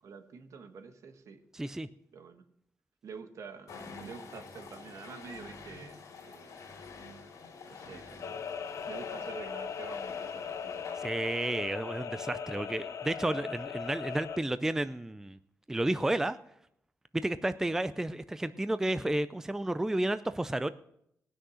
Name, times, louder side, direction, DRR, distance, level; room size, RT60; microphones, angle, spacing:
voice 1, 0.0-1.4 2.1-2.4 3.0-6.6 7.6-8.5 8.9-11.0, right 5 dB, 65° right, 8 dB, 1.3 m, -48 dB
voice 2, 1.5-1.9 11.0-15.4 15.7-16.4 17.2-20.7, right 1 dB, 10° right, 13 dB, 0.4 m, -31 dB
sound 1, 3.7-11.9, left 4 dB, 85° left, 2.7 m, -48 dB
sound 2, 8.2-14.4, left 7 dB, 60° left, 0.8 m, -39 dB
18.5 x 6.4 x 6.3 m, 0.73 s
cardioid pair, 115°, 6 cm